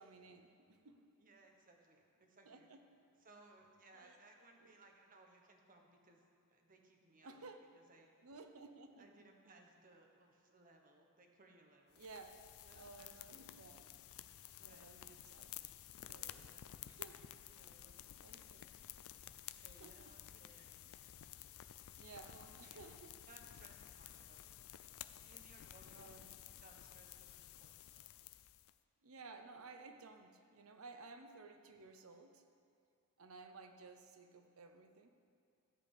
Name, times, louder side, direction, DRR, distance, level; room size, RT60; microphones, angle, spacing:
voice 1, 0.0-1.0 2.5-2.8 3.9-4.1 7.2-7.6 8.2-9.1 12.0-12.4 12.7-13.8 14.6-15.5 16.1-16.5 16.9-17.4 18.2-18.7 19.7-20.1 20.8-20.9 21.9-23.2 25.9-26.3 29.0-32.4 33.2-35.1, right 3 dB, 70° right, 6 dB, 0.9 m, -56 dB
voice 2, 1.2-2.8 3.2-6.2 6.5-7.5 7.7-8.1 9.0-12.0 12.6-13.5 14.6-15.2 16.4-16.8 17.4-18.5 19.5-21.0 22.2-22.9 23.3-24.8 25.1-28.1, right 2 dB, 40° right, 2 dB, 1.3 m, -65 dB
sound 1, 11.9-28.7, left 12 dB, 70° left, 0.4 m, -54 dB
13.5 x 5.1 x 8.4 m, 2.5 s
head